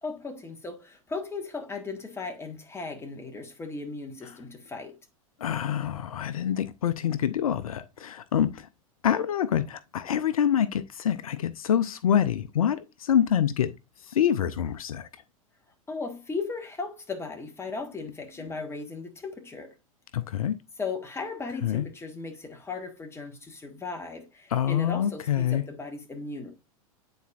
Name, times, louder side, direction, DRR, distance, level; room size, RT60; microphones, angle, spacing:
voice 1, 0.0-5.0 15.9-19.7 20.8-26.5, left 4 dB, 15° left, 1.4 m, -37 dB
voice 2, 5.4-8.7 9.0-13.7 14.1-15.1 20.1-20.6 21.6-21.9 24.5-25.6, left 9 dB, 75° left, 0.5 m, -26 dB
9.2 x 4.2 x 2.4 m
figure-of-eight pair, 90°, 18 cm